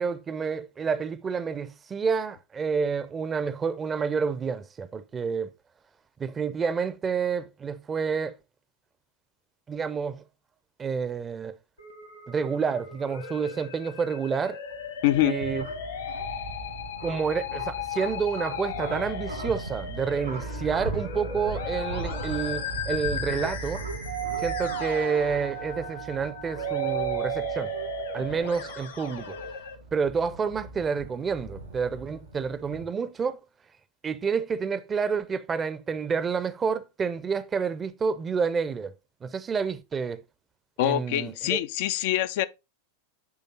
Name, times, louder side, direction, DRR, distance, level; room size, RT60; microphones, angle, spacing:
voice 1, 0.0-5.5 6.2-8.3 9.7-10.2 10.8-11.5 12.3-14.6 15.2-15.7 17.0-23.8 24.4-27.7 28.1-29.4 29.9-33.4 34.0-38.9 39.2-40.2 40.8-41.6, right 5 dB, 20° right, 0.6 m, -29 dB
Musical instrument, 11.8-29.7, left 7 dB, 65° left, 1.4 m, -37 dB
sound 1, 14.7-32.8, right 3 dB, 75° right, 2.6 m, -39 dB
voice 2, 15.0-15.3 40.8-42.5, left 14 dB, 50° left, 0.4 m, -24 dB
Doorbell, 24.1-28.9, right 18 dB, 55° right, 0.4 m, -34 dB
9.7 x 3.5 x 3.9 m
figure-of-eight pair, 90°, 0 cm